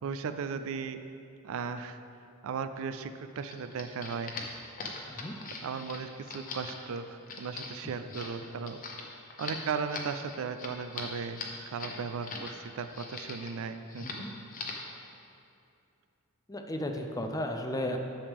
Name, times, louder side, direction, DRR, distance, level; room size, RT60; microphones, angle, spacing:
voice 1, 0.0-1.0 1.4-2.0 2.4-4.3 5.6-8.8 9.4-11.4 11.7-14.2, right 5 dB, 65° right, 10 dB, 0.4 m, -36 dB
sound 1, 3.4-12.5 12.8-13.6 13.9-14.2 14.5-14.9, left 4 dB, 40° left, 0.9 m, -41 dB
voice 2, 16.5-18.0, left 1 dB, 15° left, 4 dB, 0.5 m, -34 dB
10.0 x 6.7 x 3.6 m, 2.7 s
head